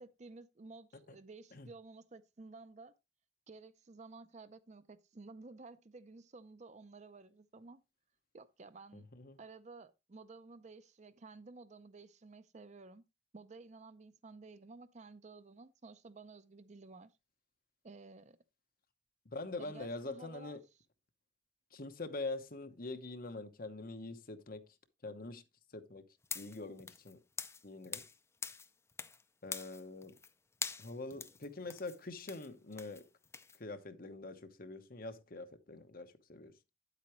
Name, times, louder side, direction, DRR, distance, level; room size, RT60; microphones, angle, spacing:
voice 1, 0.0-3.0 3.5-7.8 8.3-9.1 9.4-13.0 13.3-17.1 17.8-18.4 19.6-20.6, right 3 dB, 40° right, 0.5 m, -53 dB
voice 2, 8.9-9.4 19.2-20.6 21.7-24.6 25.0-25.4 25.7-26.0 26.3-27.2 27.6-28.1 29.4-30.2 30.8-33.1 33.5-36.5, left 2 dB, 50° left, 1.1 m, -44 dB
sound 1, 26.2-28.2 28.4-29.2 29.5-30.3 30.6-33.6, left 5 dB, 15° left, 0.5 m, -44 dB
9.5 x 8.2 x 3.1 m
head